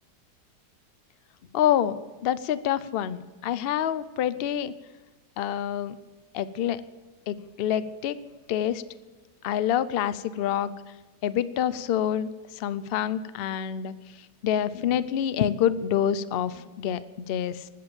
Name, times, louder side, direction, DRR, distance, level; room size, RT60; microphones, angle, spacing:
voice 1, 1.5-4.7 5.4-6.0 6.3-6.8 7.3-8.2 8.5-8.8 9.4-10.7 11.2-12.3 12.6-13.9 14.4-17.7, left 10 dB, 70° left, 15 dB, 0.5 m, -27 dB
19.5 x 7.7 x 7.1 m, 1.3 s
omnidirectional pair, 1.8 m